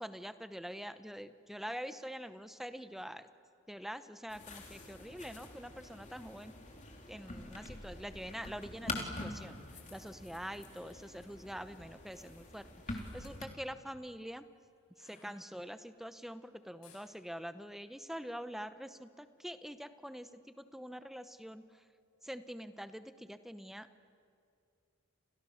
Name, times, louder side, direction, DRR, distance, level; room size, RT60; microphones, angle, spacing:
voice 1, 0.0-3.3 3.7-6.6 7.1-9.6 9.9-14.5 15.0-21.8 22.2-23.9, equal, ahead, 11 dB, 0.8 m, -45 dB
sound 1, 4.3-13.4, left 2 dB, 35° left, 3.3 m, -46 dB
sound 2, 10.4-11.1 12.8-13.5 14.9-15.8 16.8-17.1, left 5 dB, 75° left, 7.0 m, -64 dB
29.5 x 29.5 x 6.5 m, 2.4 s
head